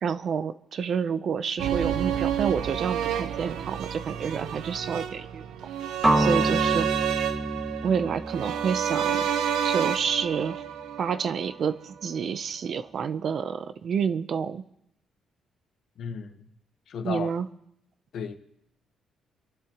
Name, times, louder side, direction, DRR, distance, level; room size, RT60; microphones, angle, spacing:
voice 1, 0.0-5.4 6.2-6.9 7.8-9.3 9.6-10.6 11.0-14.6 17.0-17.5, right 6 dB, 55° right, 12 dB, 0.7 m, -29 dB
sound 1, 1.6-11.7 12.0-12.1, right 9 dB, 85° right, 0.9 m, -29 dB
sound 2, 6.0-10.0, right 1 dB, 10° right, 2.2 m, -28 dB
voice 2, 15.9-16.5 16.9-17.3 18.1-18.3, left 6 dB, 70° left, 7 dB, 1.3 m, -34 dB
28.5 x 11.5 x 3.1 m, 0.77 s
cardioid pair, 90°, 0 cm